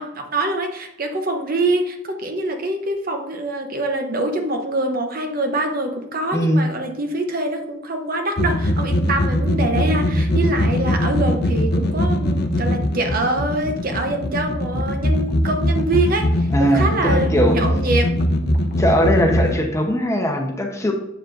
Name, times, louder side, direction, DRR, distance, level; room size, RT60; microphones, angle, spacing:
voice 1, 0.0-18.2, right 2 dB, 50° right, 4 dB, 0.9 m, -24 dB
voice 2, 6.3-6.7 16.5-17.6 18.8-20.9, equal, 15° left, 2 dB, 0.9 m, -19 dB
sound 1, 8.4-19.6, equal, 55° left, 0.7 m, -21 dB
8.0 x 7.2 x 2.6 m, 0.84 s
head